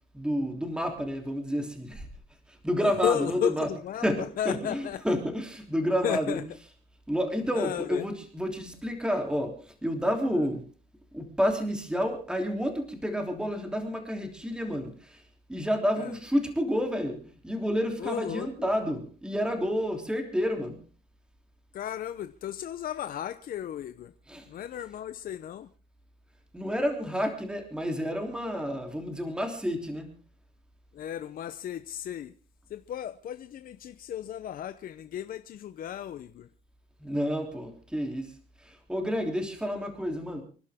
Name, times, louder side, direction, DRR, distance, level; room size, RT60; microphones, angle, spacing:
voice 1, 0.1-2.1 2.5-3.7 4.0-6.4 7.1-10.6 11.1-15.2 15.5-20.8 24.3-24.5 26.5-30.1 37.0-38.3 38.6-40.4, equal, 5° right, 3.3 m, -30 dB
voice 2, 2.8-5.1 6.0-6.4 7.5-8.1 10.3-10.5 15.9-16.2 18.0-18.7 21.7-24.1 24.4-25.7 30.9-32.3 32.7-36.5, left 10 dB, 60° left, 0.8 m, -34 dB
27.0 x 11.5 x 3.7 m
cardioid pair, 115°, 17 cm